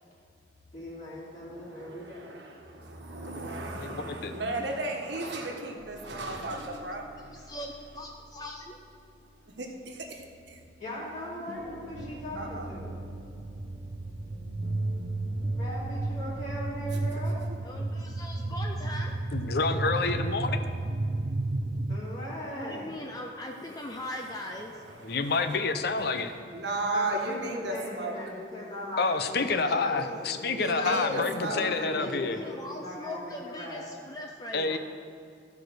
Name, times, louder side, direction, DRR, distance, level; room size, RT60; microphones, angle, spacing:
voice 1, 0.7-2.3 10.8-12.9 15.5-17.4 21.9-23.1 26.9-30.9 31.5-33.8, left 1 dB, 40° left, -7 dB, 2.5 m, -39 dB
voice 2, 1.5-7.1 9.6-10.2 10.5-10.6 12.3-12.7 25.2-25.4 26.5-28.1 30.5-31.9, right 2 dB, 70° right, 1 dB, 1.3 m, -35 dB
voice 3, 3.8-4.3 19.3-20.6 25.0-26.3 29.0-32.4 34.5-34.8, left 3 dB, 60° left, 9 dB, 0.6 m, -28 dB
sound 1, 5.7-11.0 11.3-17.6, equal, 35° right, 1.2 m, -48 dB
voice 4, 7.3-8.8 17.6-19.2 22.5-24.8 29.5-30.3 30.6-34.8, left 1 dB, 20° left, 1 dB, 0.5 m, -40 dB
sound 2, 11.9-22.0, right 2 dB, 55° right, 0.6 m, -32 dB
14.0 x 4.8 x 6.2 m, 2.4 s
head